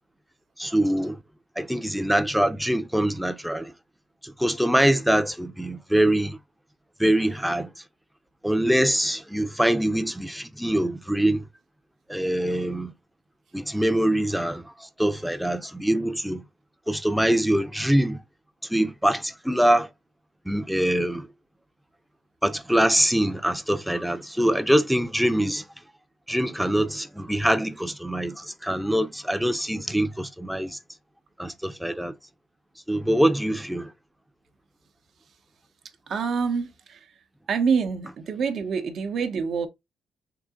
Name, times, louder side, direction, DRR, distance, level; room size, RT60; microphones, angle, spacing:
voice 1, 0.6-1.2 1.6-3.7 4.2-6.4 7.0-7.7 8.4-11.5 12.1-12.9 13.5-16.4 16.9-18.2 18.7-19.9 20.5-21.3 22.4-25.6 26.3-30.8 31.4-32.1 32.9-33.9, right 1 dB, ahead, 0.6 m, -24 dB
voice 2, 36.1-37.1 37.5-39.7, right 5 dB, 60° right, 0.8 m, -26 dB
3.9 x 2.7 x 3.7 m
cardioid pair, 90°, 0 cm